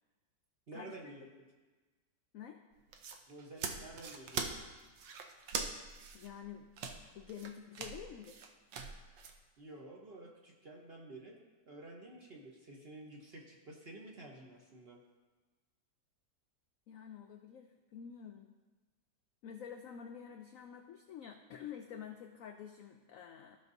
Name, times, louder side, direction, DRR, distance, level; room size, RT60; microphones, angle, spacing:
voice 1, 0.7-1.3 3.3-4.5 9.6-11.4 11.7-15.0, right 2 dB, 45° right, -1 dB, 0.9 m, -51 dB
sound 1, 2.7-9.4, right 5 dB, 80° right, 1.4 m, -42 dB
voice 2, 6.1-6.7 7.1-8.4 16.9-18.5 19.4-23.6, left 8 dB, 80° left, 5 dB, 0.7 m, -48 dB
15.0 x 5.8 x 2.7 m, 1.3 s
omnidirectional pair, 1.9 m